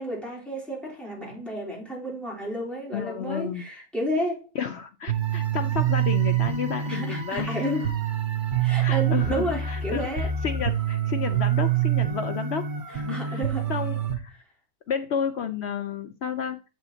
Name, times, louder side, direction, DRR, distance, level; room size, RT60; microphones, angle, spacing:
voice 1, 0.0-4.5 6.9-7.9 8.6-10.3 13.1-13.7, equal, ahead, 3.4 m, -31 dB
voice 2, 2.9-3.6 4.5-7.7 8.8-14.4 14.9-16.6, left 7 dB, 65° left, 0.7 m, -32 dB
sound 1, 5.1-14.2, right 9 dB, 40° right, 0.9 m, -26 dB
7.6 x 6.9 x 2.8 m
omnidirectional pair, 1.6 m